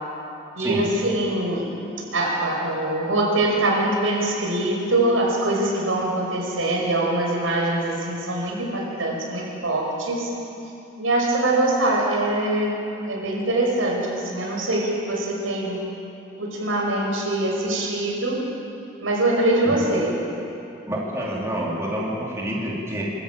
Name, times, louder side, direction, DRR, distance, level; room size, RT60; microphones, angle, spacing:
voice 1, 0.6-1.6 2.1-10.3 11.0-12.8 13.1-15.8 16.4-18.4 19.0-20.2, right 1 dB, 85° right, -2 dB, 5.6 m, -23 dB
voice 2, 20.9-23.0, equal, 15° right, -5 dB, 3.3 m, -27 dB
25.0 x 13.0 x 9.0 m, 2.8 s
head